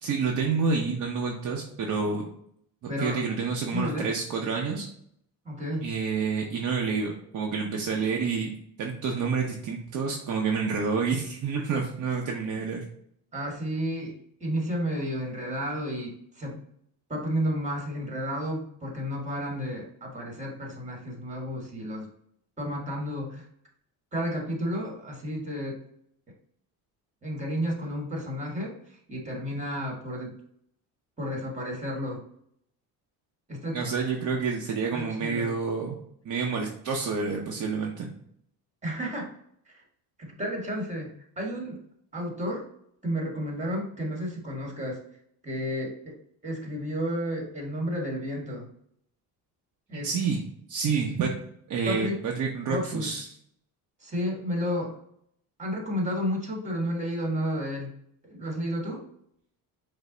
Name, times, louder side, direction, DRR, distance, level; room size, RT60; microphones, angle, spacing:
voice 1, 0.0-2.3 3.0-4.9 5.8-12.8 33.7-36.0 36.2-38.1 49.9-50.4 50.7-51.3 51.7-53.3, right 5 dB, 50° right, 0 dB, 0.7 m, -28 dB
voice 2, 2.9-3.2 3.7-4.1 5.4-5.9 13.3-16.6 17.1-22.1 22.6-23.5 24.1-25.8 27.2-30.3 31.2-32.2 33.5-33.8 34.9-35.5 38.8-39.3 39.7-39.8 40.2-41.8 42.1-42.7 43.0-45.0 45.4-46.1 46.4-48.7 49.9-50.1 51.9-52.2 52.7-53.1 54.0-55.0 55.6-57.9 58.2-59.0, equal, 20° right, 0 dB, 1.3 m, -32 dB
5.3 x 2.0 x 3.7 m, 0.69 s
cardioid pair, 110°, 38 cm